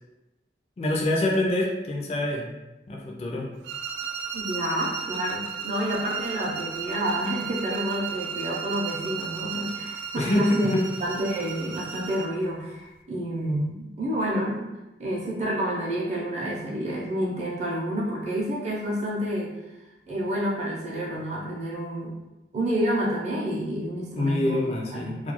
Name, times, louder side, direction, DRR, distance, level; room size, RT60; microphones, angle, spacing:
voice 1, 0.8-2.5 2.9-3.5 10.2-10.8 24.2-25.3, left 1 dB, 35° left, -1 dB, 0.3 m, -25 dB
sound 1, 3.6-12.4, right 7 dB, 85° right, 0.3 m, -34 dB
voice 2, 4.3-10.7 11.0-14.6 15.0-19.5 20.1-22.1 22.5-24.6 24.9-25.2, equal, 40° right, -4 dB, 0.6 m, -29 dB
2.3 x 2.2 x 2.9 m, 1.0 s
head